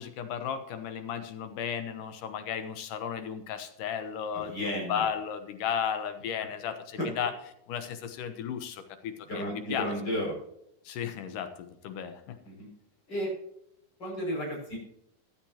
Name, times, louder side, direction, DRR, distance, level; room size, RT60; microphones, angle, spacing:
voice 1, 0.0-7.3 7.7-9.9 10.8-12.4, left 8 dB, 75° left, 8 dB, 2.6 m, -34 dB
voice 2, 4.3-5.0 7.0-7.1 9.3-10.4 12.4-12.7 13.1-13.3 14.0-14.8, equal, 30° left, -2 dB, 6.5 m, -33 dB
15.0 x 12.0 x 2.9 m, 0.74 s
omnidirectional pair, 3.8 m